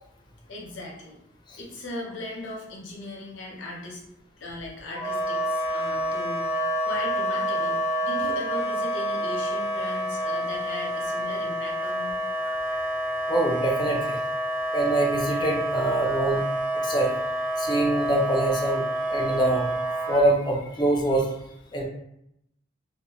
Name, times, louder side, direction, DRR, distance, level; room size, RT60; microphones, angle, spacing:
voice 1, 0.5-1.2 1.6-4.0 4.4-12.2, left 2 dB, 65° left, -2 dB, 0.7 m, -38 dB
Wind instrument woodwind instrument, 4.9-20.2, equal, 40° right, 1.1 m, -28 dB
voice 2, 13.3-14.2 14.7-16.5 16.7-17.1 17.6-21.3 21.7-21.8, right 1 dB, 20° left, 0 dB, 0.4 m, -25 dB
2.5 x 2.2 x 2.9 m, 0.79 s
head